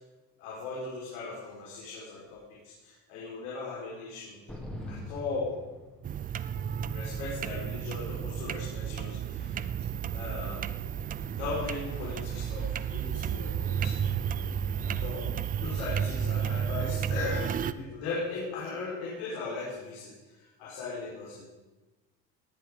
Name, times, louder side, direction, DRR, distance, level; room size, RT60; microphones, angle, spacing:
voice 1, 0.4-4.6 4.9-5.5 6.9-9.7 10.0-10.7 11.3-14.2 14.8-15.3 15.6-21.4, left 3 dB, 90° left, -6 dB, 5.0 m, -38 dB
sound 1, 4.5-6.4, left 1 dB, 5° left, 2.4 m, -42 dB
sound 2, 6.0-17.7, right 8 dB, 25° right, 0.5 m, -32 dB
18.5 x 10.0 x 5.1 m, 1.2 s
cardioid pair, 140°, 32 cm